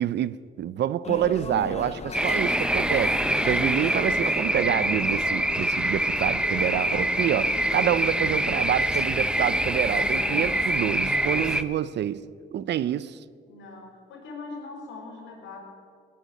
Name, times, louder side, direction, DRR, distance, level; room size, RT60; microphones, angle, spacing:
voice 1, 0.0-12.2 12.5-13.2, right 10 dB, 60° right, 0.6 m, -27 dB
sound 1, 1.0-11.6, left 5 dB, 35° left, 0.8 m, -37 dB
sound 2, 2.1-11.6, right 1 dB, 5° right, 0.7 m, -25 dB
voice 2, 13.5-15.6, left 3 dB, 80° left, 4.8 m, -41 dB
17.5 x 8.0 x 9.9 m
cardioid pair, 90°, 20 cm